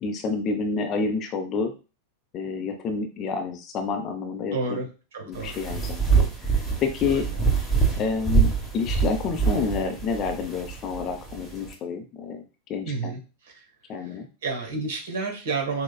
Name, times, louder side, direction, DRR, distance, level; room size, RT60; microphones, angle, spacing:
voice 1, 0.0-1.7 2.3-4.8 5.3-6.3 6.8-7.3 7.9-12.4 12.7-13.1 13.9-14.3, left 4 dB, 30° left, 5 dB, 0.6 m, -29 dB
voice 2, 4.5-5.6 12.8-13.6 14.0-14.1 14.4-15.8, right 4 dB, 55° right, 2 dB, 1.2 m, -31 dB
sound 1, 5.3-11.7, right 5 dB, ahead, 1.1 m, -25 dB
6.1 x 2.2 x 2.3 m, 0.32 s
figure-of-eight pair, 90°, 0 cm